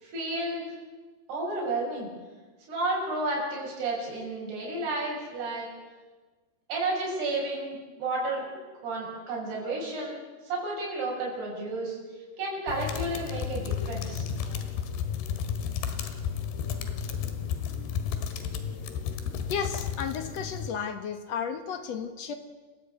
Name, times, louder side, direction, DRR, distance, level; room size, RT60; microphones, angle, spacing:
voice 1, 0.0-0.7 1.3-2.1 2.7-5.7 6.7-12.0 12.4-14.6, right 2 dB, 80° right, -3 dB, 8.3 m, -32 dB
sound 1, 12.7-20.7, left 7 dB, 85° left, 3.7 m, -32 dB
voice 2, 19.5-22.3, left 7 dB, 60° left, 7 dB, 1.8 m, -33 dB
29.0 x 15.0 x 8.2 m, 1.3 s
omnidirectional pair, 4.6 m